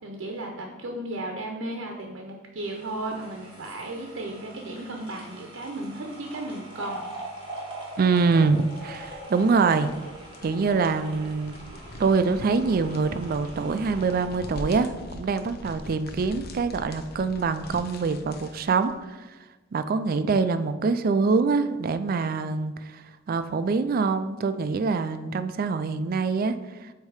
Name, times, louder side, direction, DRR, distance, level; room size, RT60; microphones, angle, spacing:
voice 1, 0.0-7.1, right 1 dB, 80° right, 2 dB, 0.7 m, -35 dB
sound 1, 2.6-15.8 16.2-16.3, right 1 dB, 25° right, 1.6 m, -43 dB
voice 2, 8.0-9.9 10.4-11.5 12.0-19.2 19.7-23.0 23.3-26.6, right 4 dB, 45° right, 10 dB, 0.3 m, -24 dB
sound 2, 8.4-19.0, left 1 dB, 50° left, 0.7 m, -43 dB
8.0 x 2.8 x 4.8 m, 1.2 s
head